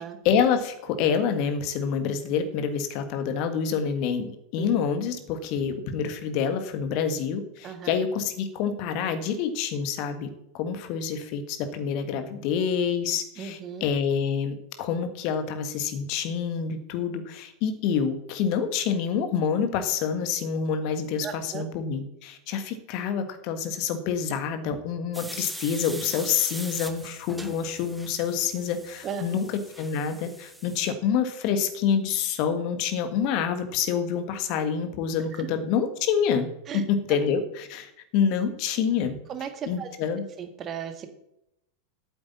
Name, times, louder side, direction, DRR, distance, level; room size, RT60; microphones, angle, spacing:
voice 1, 0.0-10.3 10.5-29.5 29.8-36.5 37.1-39.2 39.7-40.2, left 7 dB, 45° left, 8 dB, 1.6 m, -27 dB
voice 2, 13.4-13.9 21.2-21.6 29.0-29.4 35.4-35.5 36.7-36.8 39.3-39.9 40.4-41.1, right 7 dB, 30° right, 7 dB, 1.5 m, -35 dB
sound 1, 25.1-30.9, right 1 dB, 5° right, 1.1 m, -41 dB
9.2 x 7.9 x 8.4 m, 0.81 s
figure-of-eight pair, 90°, 0 cm